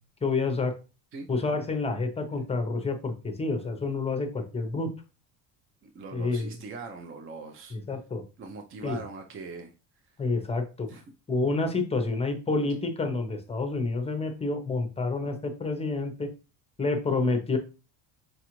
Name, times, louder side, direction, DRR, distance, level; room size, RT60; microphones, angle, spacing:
voice 1, 0.2-0.7 1.3-4.9 6.1-6.5 7.7-8.2 8.8-9.0 10.2-10.9 11.3-16.3 16.8-17.6, left 3 dB, 15° left, 6 dB, 0.6 m, -28 dB
voice 2, 5.8-7.8 8.4-9.7 10.9-11.0, right 4 dB, 30° right, 4 dB, 0.4 m, -41 dB
5.1 x 2.4 x 3.0 m, 0.32 s
cardioid pair, 115°, 44 cm